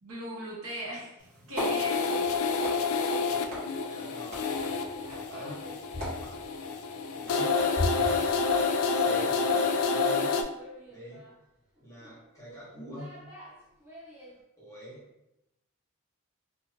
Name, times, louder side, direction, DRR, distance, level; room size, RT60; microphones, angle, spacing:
voice 1, 0.0-2.3, equal, 75° right, -6 dB, 1.1 m, -39 dB
sound 1, 1.2-9.8, left 1 dB, 40° right, 1.3 m, -39 dB
sound 2, 1.6-10.4, left 4 dB, 70° left, 0.3 m, -28 dB
voice 2, 3.3-4.8 5.3-5.7 6.0-6.4 7.1-8.4 8.9-10.4 10.9-11.3 11.8-13.2 14.6-15.0, right 1 dB, 15° left, -8 dB, 1.0 m, -46 dB
Laughter, 4.9-5.8 7.1-14.4, equal, 10° right, 0.6 m, -49 dB
2.7 x 2.5 x 2.8 m, 0.89 s
head